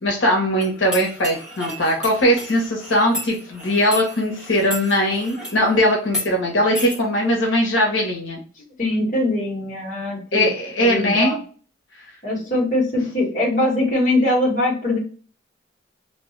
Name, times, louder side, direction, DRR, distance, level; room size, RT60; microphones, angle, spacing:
voice 1, 0.0-8.4 10.3-11.3, equal, 75° left, 0 dB, 0.9 m, -20 dB
sound 1, 0.6-5.6 6.0-6.3 6.7-7.0, left 1 dB, 5° right, 1.1 m, -32 dB
voice 2, 8.6-10.5 10.8-11.4 12.2-15.0, left 1 dB, 40° left, -4 dB, 1.1 m, -22 dB
2.7 x 2.2 x 3.1 m, 0.40 s
head